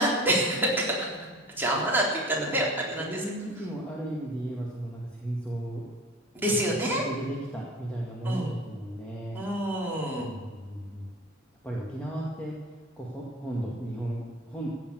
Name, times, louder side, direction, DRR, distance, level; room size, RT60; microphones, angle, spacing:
voice 1, 0.0-1.1 1.6-3.2 6.3-7.0 8.2-8.5 9.3-10.4, right 1 dB, 10° right, -4 dB, 3.7 m, -27 dB
voice 2, 0.7-1.7 2.4-2.6 3.0-5.8 6.9-9.5 10.2-11.1 11.6-12.6 13.0-14.7, right 1 dB, 5° left, -5 dB, 2.1 m, -35 dB
16.0 x 7.2 x 9.4 m, 1.5 s
head